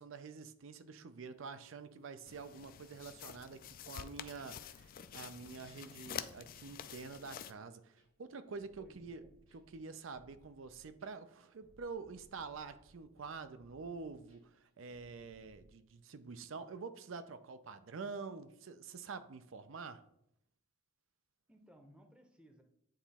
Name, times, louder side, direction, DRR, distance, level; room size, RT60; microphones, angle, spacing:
voice 1, 0.0-9.2 9.5-20.0, right 4 dB, 70° right, 12 dB, 0.5 m, -47 dB
sound 1, 2.3-7.5, left 9 dB, 45° left, 0.3 m, -48 dB
sound 2, 7.9-15.7, right 1 dB, 85° right, 1.7 m, -67 dB
voice 2, 8.8-9.3 21.5-22.6, right 1 dB, 5° right, 4 dB, 0.7 m, -61 dB
8.9 x 3.0 x 4.2 m, 0.74 s
head